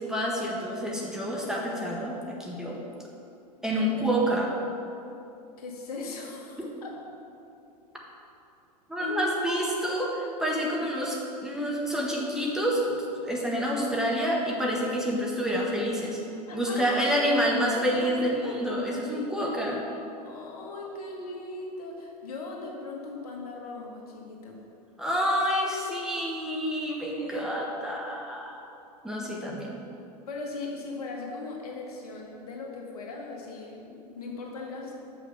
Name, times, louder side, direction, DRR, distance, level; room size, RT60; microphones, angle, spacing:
voice 1, 0.0-2.8 3.6-4.5 6.6-6.7 8.9-10.1 10.4-16.2 16.5-19.8 25.0-28.6 29.0-29.8, equal, 5° right, -3 dB, 1.4 m, -28 dB
voice 2, 5.6-7.0 9.0-9.2 9.4-10.0 16.5-17.0 17.4-17.5 17.9-18.4 19.4-24.6 27.1-27.5 30.3-34.9, left 3 dB, 65° left, 0 dB, 1.7 m, -39 dB
6.5 x 6.2 x 6.9 m, 2.7 s
figure-of-eight pair, 95°, 21 cm